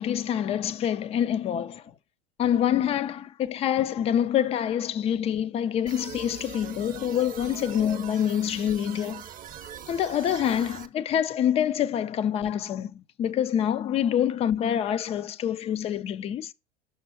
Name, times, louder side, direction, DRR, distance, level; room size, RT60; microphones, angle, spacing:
voice 1, 0.0-1.8 2.4-9.2 9.9-16.5, left 9 dB, 20° left, 0.3 m, -26 dB
sound 1, 5.9-10.9, right 9 dB, 25° right, 0.7 m, -42 dB
6.0 x 5.8 x 4.2 m
hypercardioid pair, 95°, 35 cm